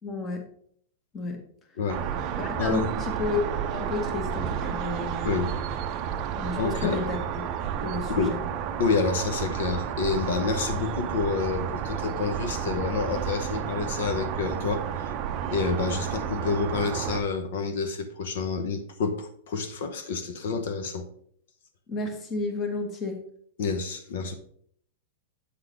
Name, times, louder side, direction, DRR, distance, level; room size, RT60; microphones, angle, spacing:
voice 1, 0.0-0.4 1.1-1.4 2.4-5.3 6.4-7.2 7.8-8.4 21.9-23.2, left 3 dB, 20° left, 1.1 m, -31 dB
voice 2, 1.8-2.1 2.6-2.9 5.2-5.5 6.6-7.0 8.1-8.4 8.8-15.1 15.5-21.1 23.6-24.3, left 4 dB, 60° left, 0.8 m, -28 dB
sound 1, 1.9-17.2, right 8 dB, 30° right, 0.6 m, -31 dB
8.2 x 3.9 x 5.0 m
supercardioid pair, 170°, 0 cm